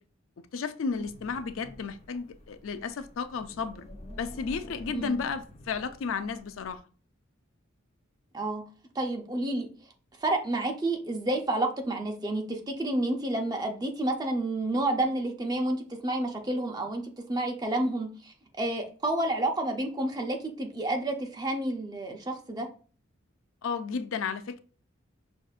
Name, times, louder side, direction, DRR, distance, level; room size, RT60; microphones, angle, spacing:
voice 1, 0.5-3.9 4.2-6.8 23.6-24.6, left 5 dB, 75° left, 0.4 m, -33 dB
Wind, 0.9-6.8, equal, 35° left, 0.8 m, -48 dB
voice 2, 8.9-9.7 10.2-22.7, right 1 dB, 20° right, 0.6 m, -30 dB
6.1 x 2.5 x 2.4 m
head